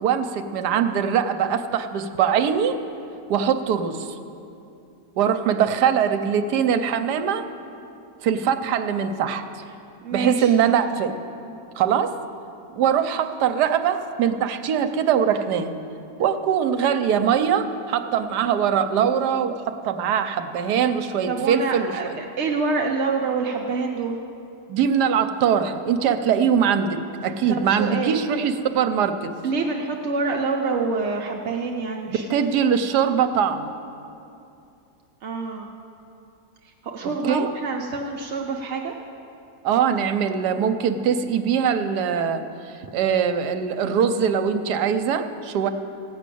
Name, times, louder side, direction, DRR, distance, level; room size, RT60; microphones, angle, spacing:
voice 1, 0.0-2.7 3.3-4.2 5.2-7.5 8.2-9.4 10.1-11.2 11.8-12.1 12.7-15.7 16.2-22.2 24.7-29.3 32.1-33.7 37.0-37.5 39.6-42.4 42.9-45.7, right 8 dB, 75° right, 8 dB, 1.2 m, -22 dB
voice 2, 10.0-10.5 21.3-24.2 27.7-28.2 29.4-32.2 35.2-35.7 36.8-38.9, right 4 dB, 55° right, 1 dB, 0.8 m, -26 dB
16.0 x 6.2 x 8.3 m, 2.7 s
omnidirectional pair, 1.9 m